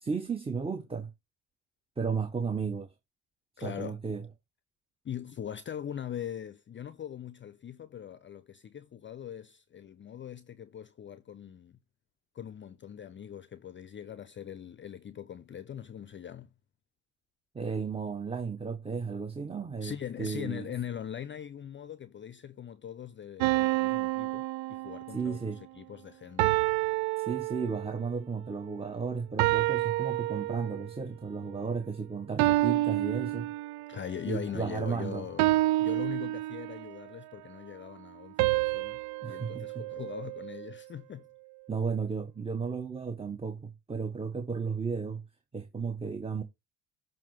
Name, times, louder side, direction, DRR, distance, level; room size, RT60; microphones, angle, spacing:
voice 1, 0.0-1.1 2.0-2.9 3.6-4.3 17.5-20.7 25.1-25.6 27.2-33.5 34.3-35.3 39.2-39.9 41.7-45.2 45.5-46.4, right 5 dB, 15° right, 0.8 m, -34 dB
voice 2, 3.6-4.0 5.0-11.8 12.3-16.5 19.8-24.4 24.7-25.4 25.8-26.5 33.9-41.3, left 9 dB, 30° left, 0.5 m, -41 dB
sound 1, 23.4-25.3 26.4-28.0 29.4-31.0 32.4-34.1 35.4-37.0 38.4-40.7, right 18 dB, 75° right, 0.5 m, -29 dB
7.3 x 2.7 x 5.4 m
hypercardioid pair, 65°, 38 cm